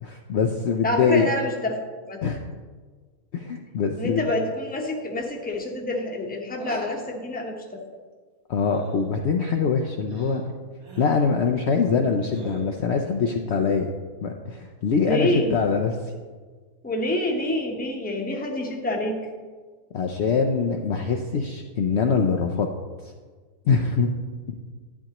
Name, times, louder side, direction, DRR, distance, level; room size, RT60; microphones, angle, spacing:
voice 1, 0.0-1.3 2.2-2.4 3.3-4.3 8.5-10.5 11.0-13.9 14.2-16.0 19.9-22.7 23.7-24.1 24.5-24.6, left 5 dB, 60° left, 2 dB, 0.8 m, -23 dB
voice 2, 0.8-1.8 2.1-2.2 4.0-7.8 15.0-15.5 16.8-19.2, left 1 dB, 5° left, 0 dB, 0.9 m, -27 dB
sound 1, 6.5-7.1 8.6-9.1 10.1-10.5 10.8-11.3 12.3-12.8, right 3 dB, 80° right, 1.9 m, -43 dB
11.0 x 9.3 x 2.9 m, 1.5 s
omnidirectional pair, 1.5 m